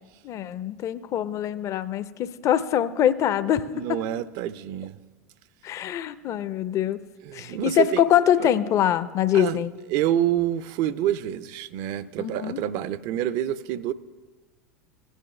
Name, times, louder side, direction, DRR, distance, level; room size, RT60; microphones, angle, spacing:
voice 1, 0.2-4.0 5.6-7.0 7.3-9.7 12.2-12.6, left 10 dB, 35° left, 0.5 m, -24 dB
voice 2, 3.7-5.0 7.2-8.1 8.4-8.5 9.3-9.6 9.9-13.9, right 11 dB, 50° right, 0.5 m, -27 dB
16.5 x 9.0 x 3.2 m
hypercardioid pair, 85°, 9 cm